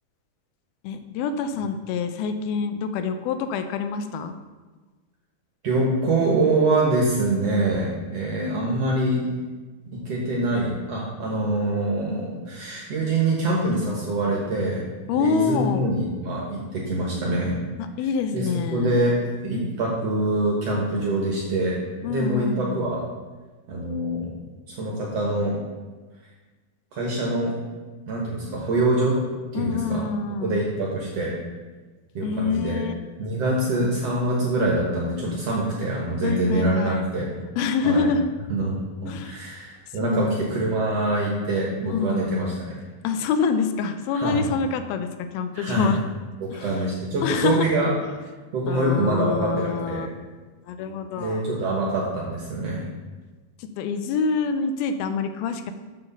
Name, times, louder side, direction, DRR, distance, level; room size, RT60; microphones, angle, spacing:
voice 1, 0.8-4.4 15.1-15.9 17.8-19.0 22.0-22.9 29.5-30.6 32.2-32.9 36.2-37.1 37.6-38.3 39.1-39.4 40.0-40.4 41.9-42.5 43.0-45.1 45.3-46.0 46.5-46.9 47.2-47.7 48.7-50.1 50.7-51.4 53.6-55.7, left 5 dB, 85° left, 8 dB, 2.5 m, -26 dB
voice 2, 5.6-9.2 9.9-14.8 15.2-16.6 16.9-17.5 18.3-19.2 19.4-21.8 22.1-23.0 23.7-24.3 24.7-25.6 26.9-27.6 28.1-29.2 29.5-30.0 30.4-31.3 32.2-32.8 33.2-37.3 37.8-38.0 38.5-42.8 44.1-44.5 45.5-45.9 46.4-47.9 48.5-50.1 51.2-52.8, right 2 dB, 60° right, -3 dB, 1.8 m, -24 dB
7.0 x 5.3 x 6.7 m, 1.3 s
omnidirectional pair, 4.3 m